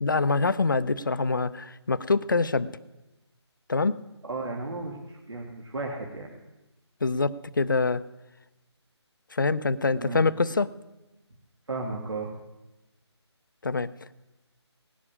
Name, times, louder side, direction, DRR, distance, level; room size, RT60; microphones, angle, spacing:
voice 1, 0.0-2.7 3.7-4.0 7.0-8.0 9.3-10.7 13.6-13.9, left 3 dB, 45° left, 14 dB, 0.6 m, -25 dB
voice 2, 4.2-6.3 10.0-10.3 11.7-12.3, right 3 dB, 70° right, -1 dB, 2.6 m, -34 dB
18.5 x 7.2 x 9.9 m, 1.0 s
figure-of-eight pair, 175°, 15 cm